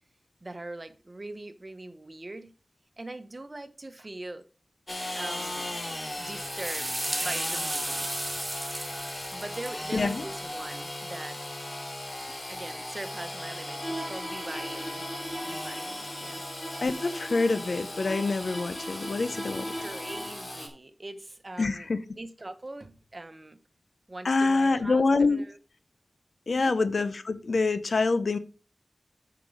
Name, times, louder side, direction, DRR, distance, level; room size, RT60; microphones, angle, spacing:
voice 1, 0.4-2.5 3.0-4.4 5.1-5.8 6.2-6.9 7.2-8.5 9.3-11.4 12.5-15.0 15.4-16.4 19.8-21.9 22.2-23.6 24.1-25.6 26.6-26.7, right 2 dB, 45° right, 1.1 m, -42 dB
Engine / Sawing, 4.9-20.7, left 1 dB, 45° left, 2.8 m, -38 dB
sound 1, 6.0-10.8, right 1 dB, 20° right, 2.7 m, -35 dB
voice 2, 9.9-10.2 16.8-19.7 21.6-22.0 24.2-25.4 26.5-28.4, left 3 dB, 80° left, 0.7 m, -26 dB
Bowed string instrument, 13.8-20.5, equal, 20° left, 2.4 m, -39 dB
8.2 x 5.9 x 4.9 m
cardioid pair, 40°, 0 cm